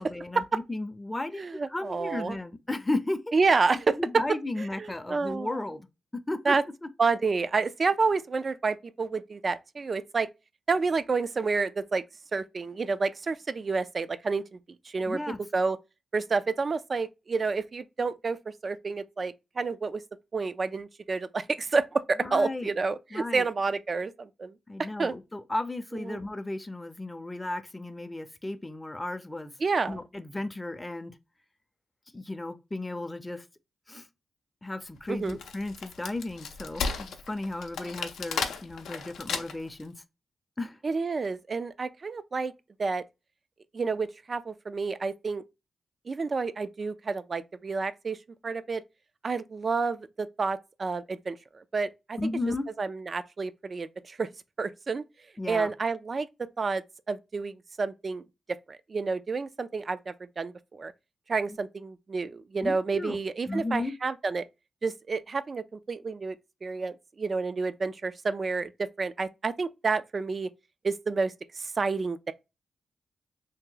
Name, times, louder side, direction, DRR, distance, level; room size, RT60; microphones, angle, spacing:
voice 1, 0.0-1.4 1.7-3.2 3.9-5.9 6.1-6.5 15.1-15.4 22.2-22.7 23.1-23.5 24.7-29.5 29.9-31.1 32.1-33.4 33.9-34.0 34.6-39.9 40.6-40.8 52.2-52.7 55.4-55.7 62.6-63.2 63.5-63.9, left 2 dB, 20° left, 0.5 m, -34 dB
voice 2, 1.3-2.4 3.3-4.0 4.6-5.6 6.4-6.6 7.0-10.3 10.7-12.0 12.3-14.6 14.8-15.2 15.5-15.8 16.1-18.4 18.6-20.0 20.3-24.5 25.0-25.1 25.9-26.2 29.6-30.0 35.1-35.4 40.8-42.5 42.8-43.0 43.7-45.4 46.1-48.2 48.4-48.8 49.2-52.2 52.8-54.3 54.6-55.0 55.5-56.3 56.6-58.2 58.7-60.9 61.3-64.4 64.8-66.4 66.6-70.5 70.8-72.3, right 4 dB, 50° right, 0.3 m, -29 dB
Wood, 35.1-39.8, left 5 dB, 85° left, 0.5 m, -34 dB
2.8 x 2.1 x 3.8 m
supercardioid pair, 50°, 0 cm